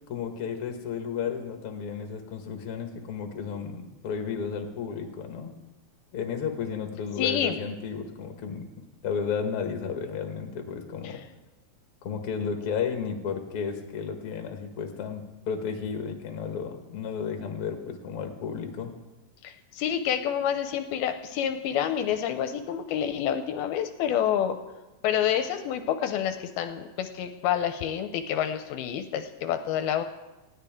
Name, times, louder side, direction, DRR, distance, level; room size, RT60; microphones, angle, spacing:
voice 1, 0.1-5.5 6.1-8.7 9.0-11.2 12.0-19.0, left 6 dB, 55° left, 4 dB, 1.7 m, -33 dB
voice 2, 7.2-7.6 11.0-11.1 19.4-24.6 25.0-30.0, left 9 dB, 80° left, 8 dB, 2.5 m, -28 dB
19.5 x 15.0 x 3.7 m, 1.1 s
omnidirectional pair, 4.6 m